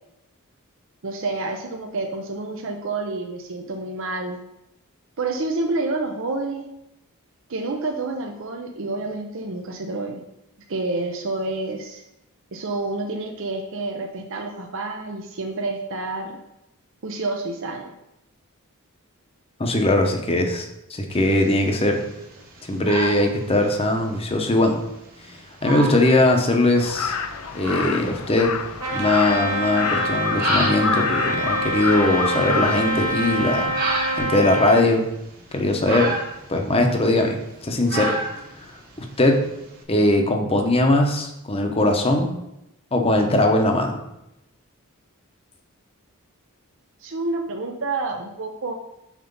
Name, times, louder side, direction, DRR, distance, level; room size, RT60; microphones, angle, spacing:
voice 1, 1.0-4.4 5.2-6.7 7.5-10.2 10.7-12.0 12.5-16.4 17.0-17.9 47.0-48.7, right 2 dB, 60° right, 2 dB, 0.6 m, -28 dB
voice 2, 19.6-22.0 22.7-24.8 25.6-27.1 27.5-28.5 28.9-33.7 34.2-35.0 35.5-36.2 36.5-38.2 39.2-39.4 39.9-42.3 42.9-44.0, left 1 dB, 25° left, 3 dB, 0.8 m, -20 dB
sound 1, 21.1-39.8, right 3 dB, 40° right, 1.3 m, -34 dB
Crow, 26.8-34.2, left 6 dB, 75° left, 0.6 m, -28 dB
Trumpet, 28.8-34.9, right 1 dB, 75° right, 1.7 m, -25 dB
5.9 x 4.3 x 5.4 m, 0.86 s
head